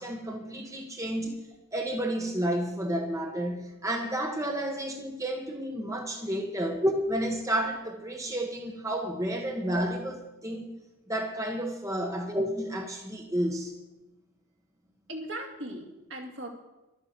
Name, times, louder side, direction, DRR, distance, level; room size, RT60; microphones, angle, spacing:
voice 1, 0.0-1.3 1.7-10.7 11.1-13.7, right 1 dB, 15° right, 2 dB, 1.2 m, -31 dB
voice 2, 15.1-16.5, right 1 dB, 60° right, 1 dB, 2.5 m, -39 dB
12.0 x 9.6 x 7.7 m, 1.0 s
head